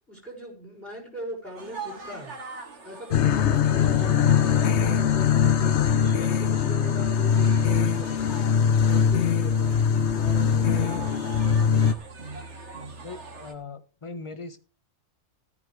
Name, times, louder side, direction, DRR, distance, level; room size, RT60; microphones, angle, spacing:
voice 1, 0.1-2.4 2.8-9.8 10.1-11.3, equal, ahead, 5.5 m, -40 dB
sound 1, 1.6-13.5, right 4 dB, 55° right, 2.2 m, -42 dB
sound 2, 3.1-11.9, left 7 dB, 60° left, 1.0 m, -22 dB
voice 2, 13.0-14.6, left 3 dB, 25° left, 1.2 m, -39 dB
14.5 x 13.0 x 3.4 m
omnidirectional pair, 1.4 m